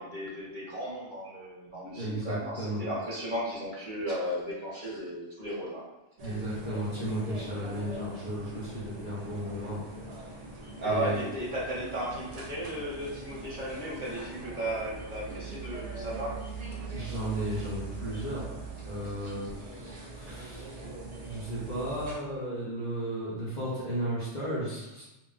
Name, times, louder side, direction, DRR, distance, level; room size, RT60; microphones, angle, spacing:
voice 1, 0.0-5.8 10.8-16.3 16.9-17.0 19.2-19.3 19.8-20.1, right 1 dB, 50° right, -6 dB, 0.8 m, -35 dB
voice 2, 1.9-2.8 6.2-9.8 10.1-10.3 10.8-11.2 16.9-18.4 18.9-20.8 21.2-25.0, right 1 dB, 45° left, -9 dB, 0.7 m, -34 dB
sound 1, 6.2-22.2, right 3 dB, 75° right, 0.3 m, -42 dB
2.2 x 2.1 x 3.8 m, 0.97 s
omnidirectional pair, 1.2 m